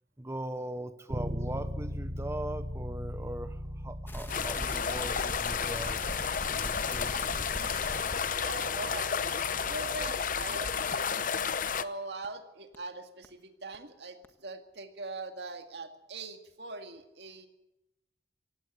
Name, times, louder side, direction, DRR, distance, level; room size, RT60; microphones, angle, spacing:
voice 1, 0.2-8.0, right 1 dB, 15° right, 10 dB, 0.9 m, -41 dB
Bass guitar, 1.1-10.9, equal, 30° right, 1.2 m, -40 dB
sound 1, 4.1-8.3 8.7-8.8 9.2-9.3 9.7-9.8 10.2-10.3 10.7-10.8 11.2-11.3 11.7-11.8 12.2-12.3 12.7-12.8 13.2-13.3 13.7-13.8 14.2-14.3, left 1 dB, 15° left, 1.4 m, -41 dB
sound 2, 4.3-11.8, left 6 dB, 50° left, 0.8 m, -32 dB
voice 2, 8.4-11.1 11.6-17.5, right 3 dB, 75° right, 6 dB, 2.1 m, -42 dB
17.5 x 16.5 x 9.3 m, 0.92 s
head